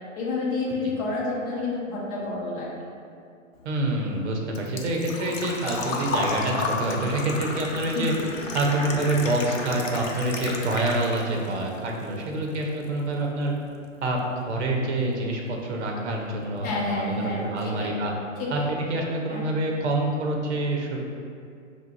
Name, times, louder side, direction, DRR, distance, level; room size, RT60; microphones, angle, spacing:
voice 1, 0.1-2.7 7.9-8.1 16.6-17.4 17.8-17.9 18.4-18.7 19.3-19.4, left 3 dB, 30° left, -5 dB, 0.9 m, -29 dB
Engine / Trickle dribble / Fill (with liquid), 3.6-11.5 11.9-12.8 13.1-13.2 15.1-15.2 15.4-15.8 16.1-16.2 16.5-16.6, left 3 dB, 75° left, 0.6 m, -32 dB
voice 2, 3.6-8.1 8.5-13.5 14.0-14.2 14.4-18.1 18.5-21.0, right 2 dB, 60° right, 0 dB, 0.8 m, -27 dB
3.6 x 2.3 x 4.5 m, 2.4 s
hypercardioid pair, 125°, 39 cm